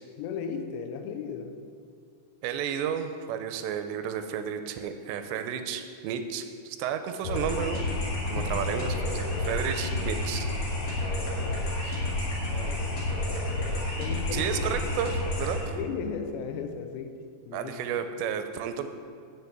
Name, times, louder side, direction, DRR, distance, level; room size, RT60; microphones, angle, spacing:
voice 1, 0.2-1.6 8.3-9.2 12.5-13.0 13.9-15.1 15.7-17.2 17.5-17.8, left 6 dB, 85° left, 7 dB, 2.8 m, -36 dB
voice 2, 2.4-7.9 8.3-10.5 11.8-12.1 14.0-15.1 15.4-15.8 17.5-18.9, right 8 dB, 85° right, 8 dB, 2.8 m, -32 dB
sound 1, 7.2-15.6, left 2 dB, 55° left, 3.5 m, -30 dB
7.1 x 6.8 x 8.0 m, 2.3 s
omnidirectional pair, 5.0 m